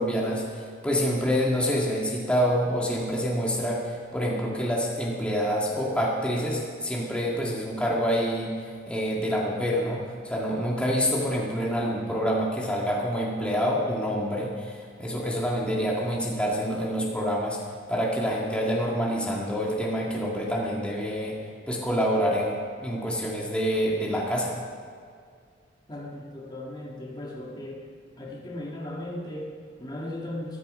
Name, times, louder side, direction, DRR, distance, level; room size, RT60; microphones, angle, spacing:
voice 1, 0.0-17.6 17.9-21.4 21.7-24.6, equal, 5° left, -3 dB, 2.0 m, -27 dB
voice 2, 25.9-27.9 28.2-30.6, left 1 dB, 25° left, -3 dB, 2.0 m, -37 dB
14.0 x 13.5 x 5.6 m, 2.1 s
head